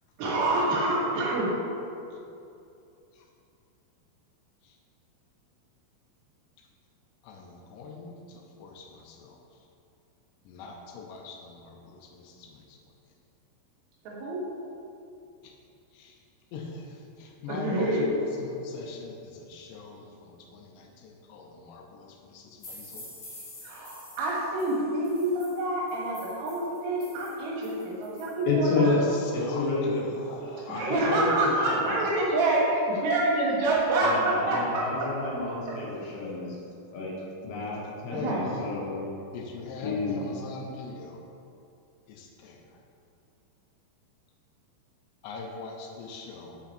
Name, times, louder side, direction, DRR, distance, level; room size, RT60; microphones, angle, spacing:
voice 1, 0.2-1.5 14.1-14.4 17.5-18.1 23.6-29.0 30.8-35.4 35.7-35.8 38.1-38.4, right 2 dB, 80° right, -5 dB, 3.8 m, -27 dB
voice 2, 7.2-9.4 10.5-12.8 15.4-15.5 15.9-16.2 16.5-23.1 28.8-31.0 31.7-32.4 38.1-38.7 39.3-41.2 42.1-42.6 45.2-46.6, left 3 dB, 85° left, 1 dB, 3.0 m, -42 dB
sound 1, 22.6-28.4, left 1 dB, 45° left, 2.6 m, -48 dB
voice 3, 28.5-29.0 29.3-30.0 30.7-32.0 34.0-36.6 36.9-37.2 37.4-39.1 39.8-40.2, left 3 dB, 70° left, -4 dB, 3.0 m, -30 dB
7.3 x 5.7 x 4.4 m, 2.6 s
omnidirectional pair, 5.0 m